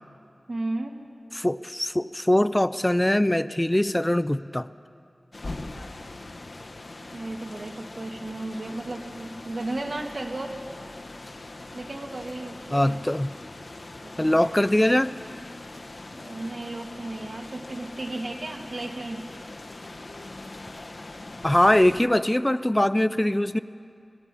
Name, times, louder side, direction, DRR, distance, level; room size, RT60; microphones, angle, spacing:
voice 1, 0.5-1.0 7.1-10.6 11.7-13.0 14.0-14.5 16.1-19.3, right 2 dB, 75° right, 1 dB, 2.0 m, -34 dB
voice 2, 1.3-4.7 12.7-13.3 14.2-15.1 21.4-23.6, left 1 dB, 20° left, 13 dB, 0.4 m, -22 dB
sound 1, 5.3-22.0, left 2 dB, 65° left, 1.0 m, -41 dB
26.5 x 17.0 x 6.2 m, 2.4 s
wide cardioid pair, 55°, 0 cm